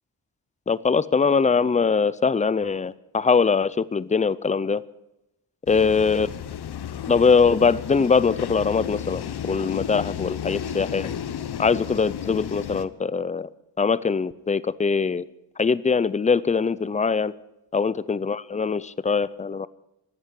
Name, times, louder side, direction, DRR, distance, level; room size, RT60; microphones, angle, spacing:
voice 1, 0.7-4.8 5.7-6.3 7.1-11.1 11.6-13.5 13.8-15.2 15.6-17.3 17.7-19.7, left 5 dB, 20° left, 18 dB, 0.5 m, -22 dB
sound 1, 5.7-12.8, left 9 dB, 65° left, 0.9 m, -33 dB
14.5 x 10.0 x 9.8 m, 0.89 s
wide cardioid pair, 115°, 41 cm